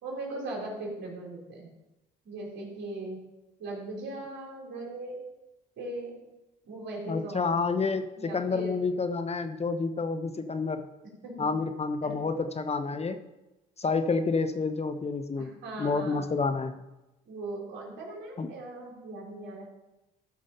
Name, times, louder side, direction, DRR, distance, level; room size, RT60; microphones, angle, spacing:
voice 1, 0.0-1.7 2.2-3.2 3.6-5.2 5.8-6.2 6.6-7.5 8.2-8.7 11.2-11.5 12.0-12.2 15.4-16.2 17.3-19.6, right 2 dB, 65° right, -2 dB, 4.2 m, -39 dB
voice 2, 7.1-10.9 11.4-13.2 13.8-15.5 15.8-16.8 18.4-18.5, left 4 dB, 30° left, 9 dB, 0.9 m, -29 dB
14.0 x 5.0 x 5.7 m, 0.99 s
hypercardioid pair, 60°, 21 cm